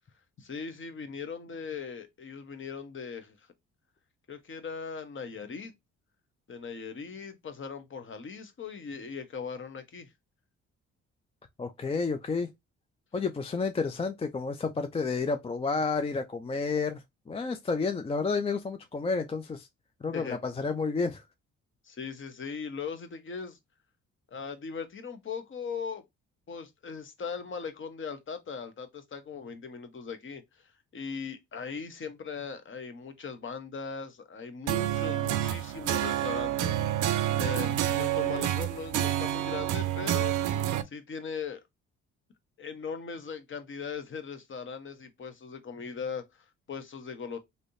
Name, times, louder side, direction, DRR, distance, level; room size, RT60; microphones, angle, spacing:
voice 1, 0.4-3.4 4.3-5.7 6.5-10.1 20.1-20.4 21.8-23.6 24.3-26.0 26.5-30.6 30.9-40.4 40.8-41.6 42.6-47.4, left 5 dB, 40° left, 0.9 m, -39 dB
voice 2, 11.6-12.5 13.1-19.7 20.0-21.2, left 4 dB, 20° left, 0.4 m, -30 dB
sound 1, 34.7-40.8, right 12 dB, 80° right, 0.5 m, -28 dB
3.3 x 2.7 x 2.6 m
cardioid pair, 90°, 30 cm